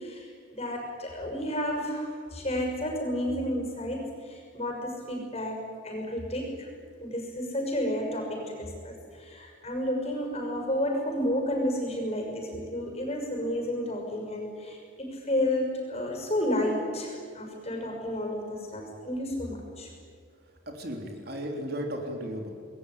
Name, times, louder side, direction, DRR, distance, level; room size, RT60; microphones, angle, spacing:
voice 1, 0.0-6.7 6.9-19.9, left 1 dB, 30° left, 2 dB, 6.3 m, -31 dB
voice 2, 20.6-22.5, equal, 50° right, 2 dB, 3.4 m, -35 dB
27.0 x 20.5 x 10.0 m, 2.3 s
head